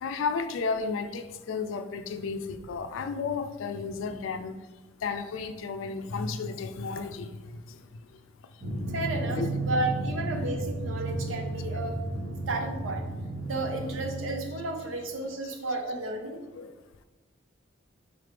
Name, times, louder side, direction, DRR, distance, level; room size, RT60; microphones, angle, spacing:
voice 1, 0.0-4.5 5.0-7.3 9.4-9.6 10.3-10.5 16.5-16.7, left 5 dB, 85° left, 9 dB, 0.4 m, -33 dB
Drum, 8.6-15.1, right 2 dB, 50° right, 0.9 m, -33 dB
voice 2, 8.9-12.0 12.5-13.1 13.5-16.4, right 2 dB, 85° right, 4 dB, 0.6 m, -32 dB
3.9 x 3.3 x 3.3 m, 1.2 s
head